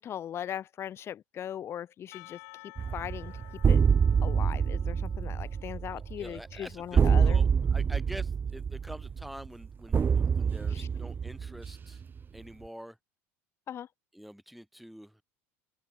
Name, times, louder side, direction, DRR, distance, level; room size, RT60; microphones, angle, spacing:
voice 1, 0.0-3.3 3.7-3.8 4.2-7.4 10.7-10.9 13.7-13.9, left 10 dB, 35° left, 0.3 m, -39 dB
Percussion / Church bell, 2.1-6.7, left 32 dB, 70° left, 2.8 m, -53 dB
sound 1, 2.8-12.2, right 6 dB, 25° right, 0.5 m, -26 dB
voice 2, 5.9-12.0 12.3-13.0 14.1-15.2, equal, ahead, 2.1 m, -46 dB
open air
hypercardioid pair, 85°, 8 cm